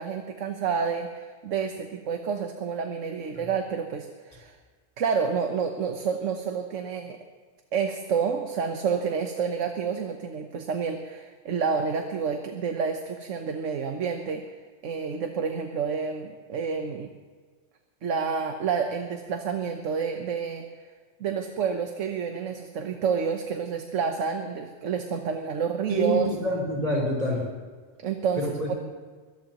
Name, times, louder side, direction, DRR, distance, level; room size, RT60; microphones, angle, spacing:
voice 1, 0.0-4.5 5.0-7.2 7.7-14.4 14.8-17.1 18.0-20.7 21.2-26.3 28.0-28.7, right 6 dB, 75° right, 5 dB, 1.3 m, -29 dB
voice 2, 25.9-27.4 28.4-28.8, equal, 35° right, -4 dB, 3.9 m, -27 dB
23.5 x 18.0 x 3.0 m, 1.5 s
omnidirectional pair, 1.3 m